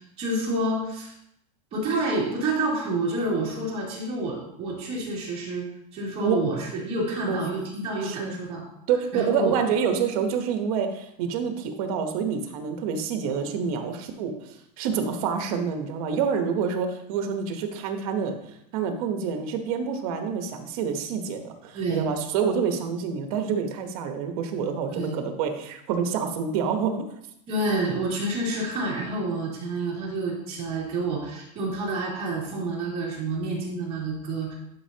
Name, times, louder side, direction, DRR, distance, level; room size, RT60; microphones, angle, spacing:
voice 1, 0.2-1.1 1.7-5.6 5.9-8.6 9.1-9.5 21.7-22.1 24.9-25.2 27.5-34.5, right 2 dB, 30° right, -5 dB, 2.7 m, -28 dB
voice 2, 8.0-8.4 8.9-18.4 18.7-27.0, right 6 dB, 60° right, 6 dB, 1.1 m, -27 dB
11.0 x 5.3 x 2.8 m, 0.78 s
supercardioid pair, 165°, 21 cm